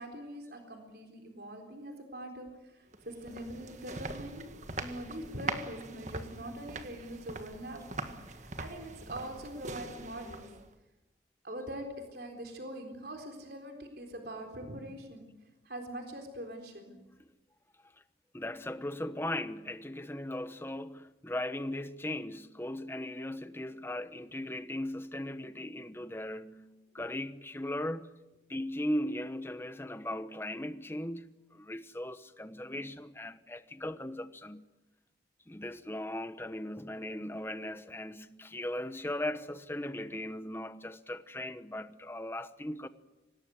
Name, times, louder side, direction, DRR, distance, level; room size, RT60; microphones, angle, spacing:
voice 1, 0.0-4.5 4.8-10.4 11.4-15.3 15.6-16.9, right 1 dB, 55° right, 3.9 m, -43 dB
sound 1, 2.9-10.7, right 3 dB, 40° right, 1.7 m, -42 dB
voice 2, 18.3-28.1 28.5-34.6 35.5-42.9, left 1 dB, 10° left, 1.0 m, -38 dB
25.5 x 19.0 x 9.5 m
head